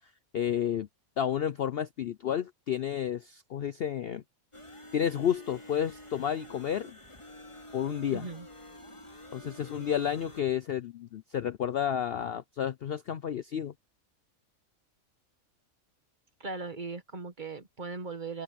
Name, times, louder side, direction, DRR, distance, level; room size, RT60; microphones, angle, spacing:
voice 1, 0.3-0.9 1.2-4.2 4.9-7.0 7.7-8.3 9.3-13.7, left 9 dB, 60° left, 0.7 m, -31 dB
sound 1, 4.5-10.4, left 1 dB, 20° left, 2.5 m, -49 dB
voice 2, 8.1-8.5 16.4-18.4, right 4 dB, 35° right, 1.5 m, -38 dB
omnidirectional pair, 1.5 m